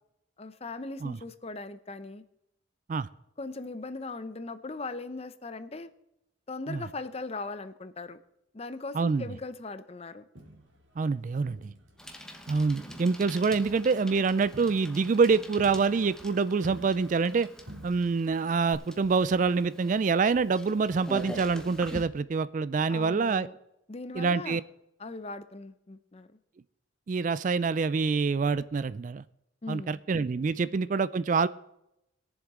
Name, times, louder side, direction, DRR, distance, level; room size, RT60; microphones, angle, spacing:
voice 1, 0.4-2.2 3.4-5.9 6.5-8.2 8.5-10.2 22.9-23.6 23.9-24.6 25.0-26.3 29.6-30.0, left 3 dB, 30° left, 12 dB, 0.6 m, -39 dB
voice 2, 8.9-9.2 11.0-11.7 12.5-17.5 17.8-23.5 24.1-24.6 27.1-29.2 29.7-31.5, right 4 dB, 40° right, 16 dB, 0.3 m, -26 dB
Crowd, 10.4-12.2 12.5-17.4 17.7-18.3 18.7-18.8, equal, 70° right, 2.4 m, -50 dB
Bicycle, 12.0-22.0, equal, 5° left, 0.9 m, -45 dB
21.0 x 7.2 x 3.7 m, 0.82 s
head